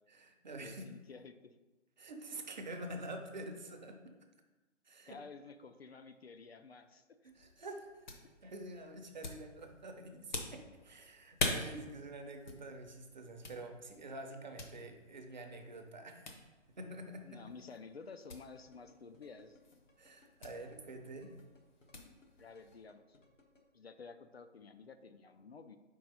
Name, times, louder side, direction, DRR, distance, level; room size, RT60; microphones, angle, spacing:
voice 1, 0.1-0.8 2.0-4.1 4.8-5.2 7.2-17.4 20.0-21.3, right 2 dB, 35° right, 4 dB, 0.7 m, -47 dB
voice 2, 0.6-1.5 5.1-7.3 7.6-7.7 8.4-8.5 17.2-19.6 22.4-23.2 23.7-25.8, left 4 dB, 55° left, 8 dB, 0.5 m, -52 dB
sound 1, 7.3-22.9, left 3 dB, 40° left, 0.8 m, -46 dB
sound 2, 18.4-23.6, left 3 dB, 85° left, 1.5 m, -64 dB
4.6 x 4.6 x 5.3 m, 1.2 s
figure-of-eight pair, 140°, 37 cm